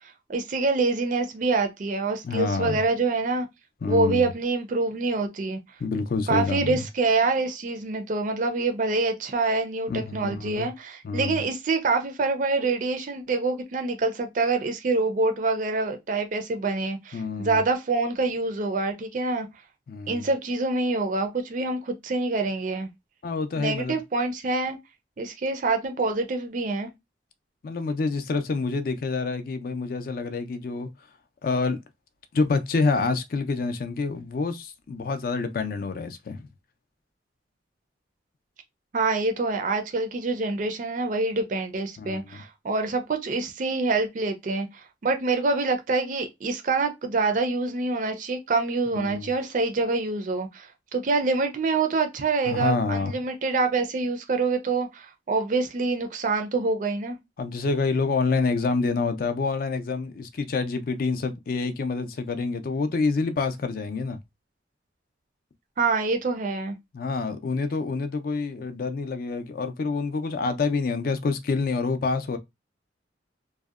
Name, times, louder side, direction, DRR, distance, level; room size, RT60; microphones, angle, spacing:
voice 1, 0.3-3.5 3.9-5.6 6.3-19.5 20.1-22.9 23.6-24.8 25.2-26.9 38.9-57.2 65.8-66.8, right 3 dB, 45° right, 0.4 m, -26 dB
voice 2, 2.2-2.8 3.8-4.3 5.8-6.8 9.9-10.7 11.0-11.4 17.1-17.6 19.9-20.3 23.2-24.0 27.6-30.9 31.4-31.8 32.3-36.5 42.0-42.4 49.0-49.3 52.5-53.1 57.4-64.2 66.9-72.4, left 4 dB, 50° left, 0.4 m, -27 dB
2.7 x 2.0 x 2.3 m
head